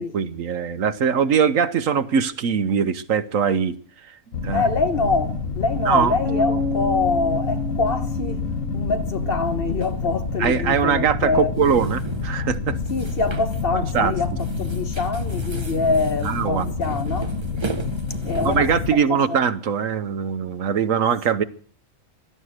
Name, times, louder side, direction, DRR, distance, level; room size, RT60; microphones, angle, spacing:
voice 1, 0.0-3.8 4.4-4.6 5.8-6.2 10.4-12.8 13.7-14.1 16.2-16.7 18.4-21.4, right 7 dB, 75° right, 1.3 m, -21 dB
sound 1, 4.3-18.9, left 4 dB, 70° left, 1.9 m, -28 dB
voice 2, 4.5-8.4 8.7-11.5 12.9-14.3 14.6-17.3 18.2-19.4, left 3 dB, 45° left, 1.3 m, -25 dB
sound 2, 6.2-10.2, left 3 dB, 10° right, 1.9 m, -30 dB
sound 3, 9.8-10.0 11.4-12.4 12.8-13.6 13.9-14.1 14.4-18.8, right 4 dB, 25° right, 0.8 m, -36 dB
16.5 x 12.5 x 6.5 m
omnidirectional pair, 1.4 m